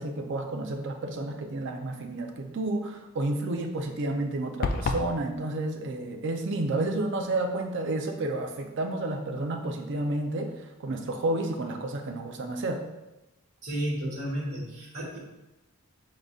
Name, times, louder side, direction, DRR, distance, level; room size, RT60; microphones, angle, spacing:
voice 1, 0.0-12.8, right 2 dB, 55° right, 4 dB, 0.5 m, -31 dB
sound 1, 4.6-5.1, left 3 dB, 45° left, 0.3 m, -27 dB
voice 2, 13.6-15.2, right 1 dB, 75° right, -3 dB, 1.3 m, -32 dB
5.0 x 3.8 x 2.4 m, 1.0 s
head